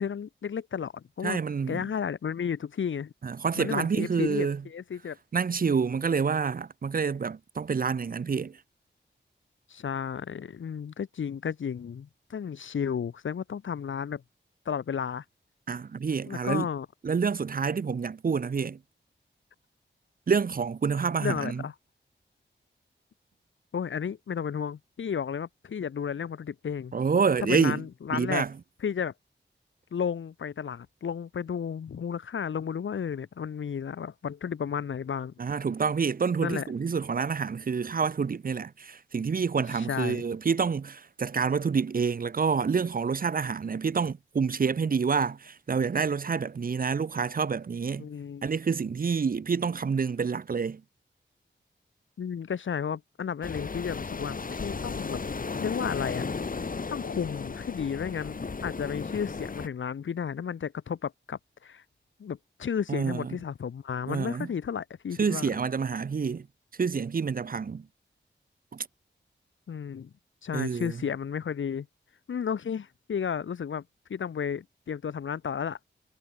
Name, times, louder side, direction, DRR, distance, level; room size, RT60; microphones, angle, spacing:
voice 1, 0.0-1.4 1.7-3.1 3.6-5.2 9.7-14.2 14.7-15.2 16.3-16.9 21.2-21.7 23.7-26.9 27.4-28.4 28.8-29.1 29.9-35.3 36.4-36.7 39.7-40.2 48.0-48.5 52.2-55.2 55.6-56.2 56.9-61.8 62.2-65.5 69.7-70.1 70.4-71.9 72.3-73.8 74.1-75.8, left 7 dB, 85° left, 1.1 m, -33 dB
voice 2, 1.2-1.8 3.2-4.6 5.3-8.6 15.7-16.7 17.0-18.8 20.3-21.6 26.9-27.8 28.1-28.5 35.4-48.1 48.4-50.8 62.9-63.3 64.1-64.5 65.2-66.5 66.8-67.9 68.7-68.9 70.5-71.0, right 5 dB, 50° right, 0.8 m, -28 dB
sound 1, 53.4-59.7, left 4 dB, 45° left, 2.1 m, -35 dB
wide cardioid pair, 130°, 19 cm